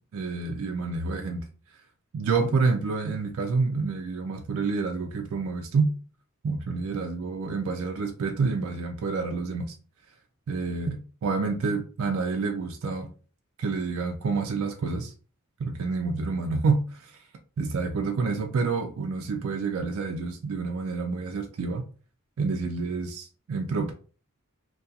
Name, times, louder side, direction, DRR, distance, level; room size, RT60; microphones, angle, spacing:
voice 1, 0.1-1.5 2.1-5.9 6.4-9.8 10.5-13.1 13.6-15.1 15.6-17.2 17.6-21.8 22.4-23.9, right 4 dB, 70° right, 0.3 m, -28 dB
2.3 x 2.3 x 2.6 m
head